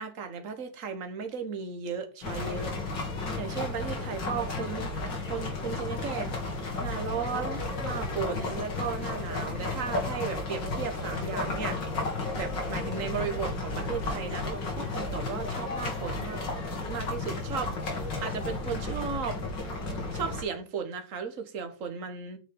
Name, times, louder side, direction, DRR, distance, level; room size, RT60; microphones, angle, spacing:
voice 1, 0.0-2.8 3.4-4.9 5.3-11.8 12.3-16.4 16.9-19.4 20.1-22.4, right 6 dB, 45° right, 1.9 m, -35 dB
sound 1, 2.2-20.4, left 2 dB, 70° left, 3.6 m, -33 dB
9.5 x 6.1 x 5.5 m
omnidirectional pair, 2.1 m